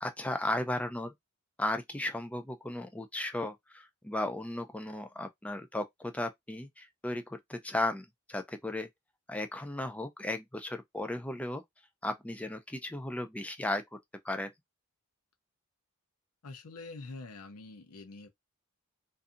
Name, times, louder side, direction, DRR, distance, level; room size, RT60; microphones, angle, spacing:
voice 1, 0.0-1.1 1.6-8.9 9.3-11.6 12.0-14.0 14.2-14.5, left 1 dB, 5° left, 0.3 m, -35 dB
voice 2, 16.4-18.3, left 3 dB, 75° left, 0.6 m, -45 dB
2.6 x 2.5 x 2.4 m
head